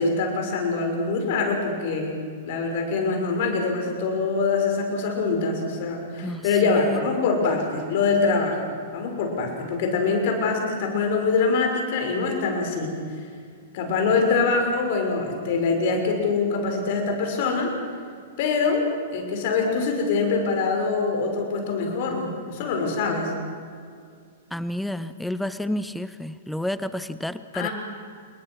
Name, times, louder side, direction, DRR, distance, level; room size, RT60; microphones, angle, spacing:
voice 1, 0.0-2.1 2.4-8.6 8.9-13.3 13.7-17.7 18.4-23.3 27.5-27.7, left 4 dB, 50° left, 3 dB, 6.2 m, -24 dB
voice 2, 6.2-7.0 24.5-27.7, left 1 dB, ahead, 14 dB, 0.8 m, -30 dB
28.0 x 22.0 x 6.4 m, 2.2 s
figure-of-eight pair, 105°, 0 cm